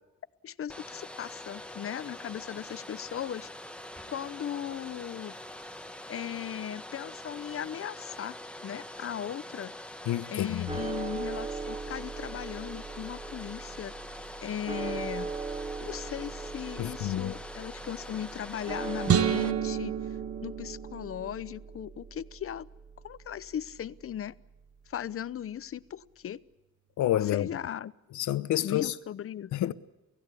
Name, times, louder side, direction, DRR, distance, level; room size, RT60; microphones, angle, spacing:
voice 1, 0.4-3.5 4.1-5.3 6.1-8.4 8.6-9.7 10.3-13.9 14.4-15.3 15.8-19.9 20.4-22.7 23.0-24.3 24.9-26.4 27.3-27.9 28.6-29.7, left 10 dB, 45° left, 0.8 m, -37 dB
Domestic sounds home sounds, 0.7-19.5, left 1 dB, 5° left, 1.3 m, -44 dB
voice 2, 10.1-10.8 16.8-17.3 27.0-27.5 28.1-28.9 29.5-29.7, left 13 dB, 75° left, 1.0 m, -29 dB
sound 1, 10.7-24.9, right 4 dB, 20° right, 0.8 m, -40 dB
sound 2, 19.1-21.4, right 9 dB, 50° right, 0.9 m, -29 dB
29.5 x 16.5 x 8.3 m
cardioid pair, 90°, 30 cm